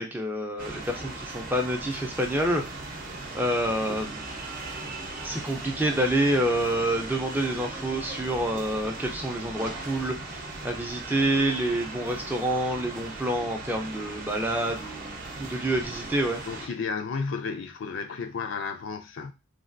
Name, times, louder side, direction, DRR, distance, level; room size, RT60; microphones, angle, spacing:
voice 1, 0.0-2.6 3.3-4.2 5.2-16.4, right 1 dB, 10° right, 0.4 m, -28 dB
sound 1, 0.6-16.7, right 2 dB, 40° right, 0.7 m, -38 dB
voice 2, 3.6-4.1 16.4-19.3, left 5 dB, 60° left, 0.4 m, -33 dB
3.2 x 2.3 x 2.5 m
head